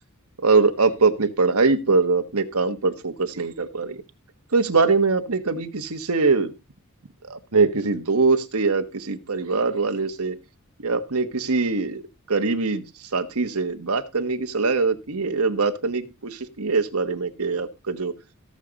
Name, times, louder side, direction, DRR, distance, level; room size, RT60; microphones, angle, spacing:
voice 1, 0.4-4.0 4.5-6.5 7.3-10.4 10.8-18.1, right 4 dB, 85° right, 7 dB, 1.3 m, -22 dB
17.0 x 6.6 x 4.1 m, 0.27 s
head